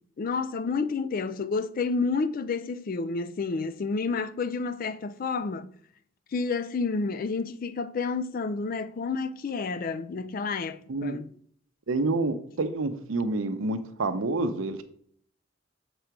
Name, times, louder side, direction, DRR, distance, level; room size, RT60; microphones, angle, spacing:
voice 1, 0.2-5.7 6.3-11.3, left 4 dB, 45° left, 0.4 m, -30 dB
voice 2, 11.9-14.8, right 2 dB, 90° right, 0.7 m, -28 dB
7.1 x 3.8 x 4.5 m
head